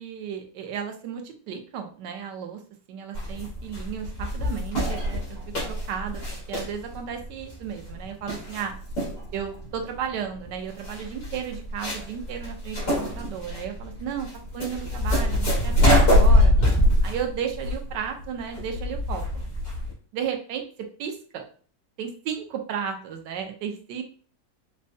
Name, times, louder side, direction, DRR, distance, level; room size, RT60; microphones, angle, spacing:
voice 1, 0.0-2.6 2.9-6.2 6.5-8.7 9.3-14.3 14.5-16.5 17.0-19.4 20.1-20.7 21.0-21.4 22.0-24.0, right 8 dB, 85° right, 5 dB, 1.3 m, -34 dB
sound 1, 3.1-19.9, left 1 dB, 65° left, 2.4 m, -24 dB
5.4 x 2.1 x 2.6 m, 0.44 s
omnidirectional pair, 1.8 m